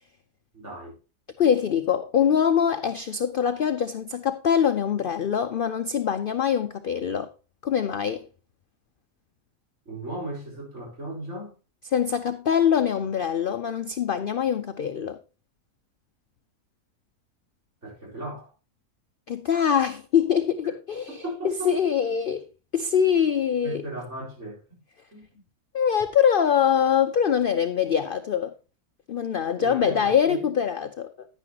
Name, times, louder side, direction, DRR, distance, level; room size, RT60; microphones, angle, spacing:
voice 1, 0.5-1.0 9.8-11.5 17.8-18.5 21.2-21.7 23.6-24.8 25.1-25.4 29.2-30.6, right 1 dB, 45° right, 4.8 m, -37 dB
voice 2, 1.4-7.3 7.6-8.3 11.9-15.2 19.3-21.2 21.4-22.5 22.7-23.8 25.7-28.5 29.1-31.3, left 8 dB, 75° left, 0.5 m, -23 dB
10.0 x 9.9 x 2.9 m
omnidirectional pair, 1.6 m